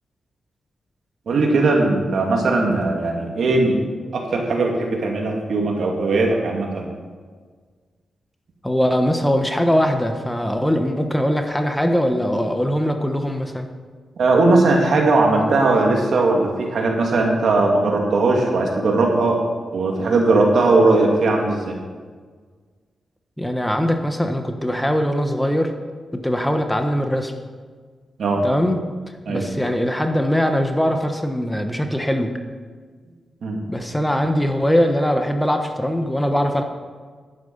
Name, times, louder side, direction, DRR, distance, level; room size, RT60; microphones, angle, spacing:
voice 1, 1.3-3.8 4.1-6.9 14.2-19.4 19.7-21.8 28.2-28.4 29.3-29.4 33.4-33.6, right 2 dB, 70° right, 0 dB, 2.4 m, -18 dB
voice 2, 8.6-13.7 23.4-25.7 26.1-27.3 28.4-28.8 29.3-32.3 33.7-36.6, equal, 10° left, 5 dB, 1.2 m, -21 dB
10.5 x 9.5 x 5.5 m, 1.5 s
cardioid pair, 75°, 0 cm